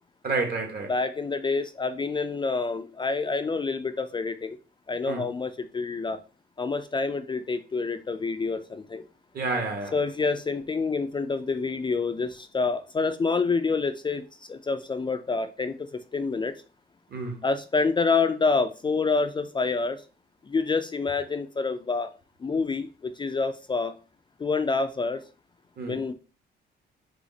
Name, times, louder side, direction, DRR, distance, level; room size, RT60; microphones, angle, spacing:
voice 1, 0.2-0.9 5.0-5.3 9.3-9.9 17.1-17.4 25.8-26.0, right 3 dB, 50° right, 1.5 m, -29 dB
voice 2, 0.9-4.6 4.9-6.2 6.6-9.0 9.9-15.8 16.1-16.5 17.4-20.0 20.5-22.1 22.4-23.9 24.4-25.2 25.8-26.1, left 4 dB, 25° left, 0.4 m, -27 dB
4.9 x 2.5 x 4.0 m
cardioid pair, 90°, 20 cm